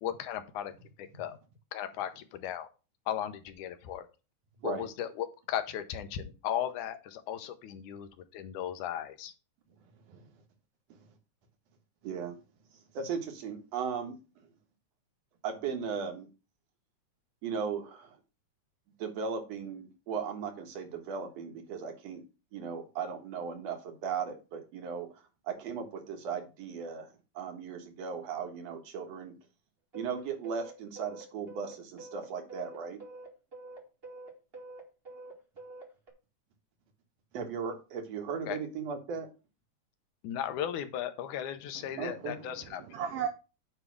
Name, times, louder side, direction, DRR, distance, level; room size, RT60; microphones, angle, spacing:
voice 1, 0.0-0.7 1.0-1.4 1.7-2.7 3.1-4.1 4.6-9.3 38.5-38.6 40.2-42.8, left 10 dB, 80° left, 2.3 m, -36 dB
voice 2, 9.8-10.3 10.9-11.0 12.0-12.4 12.7-14.5 15.4-16.3 17.4-18.2 19.0-22.2 22.5-29.3 29.9-33.0 37.3-39.3 42.0-42.3, right 6 dB, 60° right, 2.4 m, -37 dB
sound 1, 29.9-36.1, right 2 dB, 25° right, 1.5 m, -47 dB
voice 3, 41.7-43.3, right 8 dB, 80° right, 1.3 m, -38 dB
9.3 x 3.3 x 6.0 m
omnidirectional pair, 3.5 m